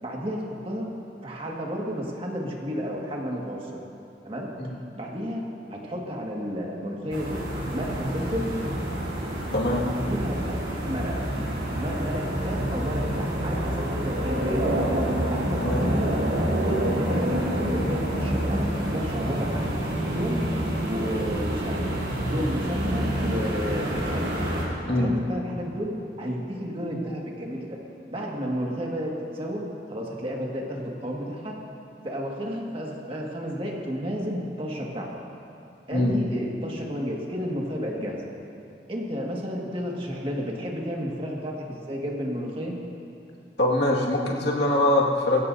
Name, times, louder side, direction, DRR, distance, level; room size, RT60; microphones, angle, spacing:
voice 1, 0.0-0.9 1.2-3.8 4.2-4.5 5.0-7.4 7.7-8.6 9.8-11.3 11.8-14.7 15.3-16.2 16.7-18.6 18.9-19.7 20.1-20.5 20.8-21.9 22.3-24.4 24.9-27.8 28.1-31.6 32.0-35.2 35.9-38.2 38.9-42.7, equal, 30° right, -2 dB, 1.9 m, -32 dB
sound 1, 7.1-24.6, right 1 dB, 70° right, 4.2 m, -27 dB
voice 2, 9.5-9.9 15.6-15.8 24.9-25.1 35.9-36.1 43.6-45.4, left 1 dB, 65° left, -3 dB, 2.0 m, -23 dB
21.5 x 16.5 x 2.7 m, 2.6 s
head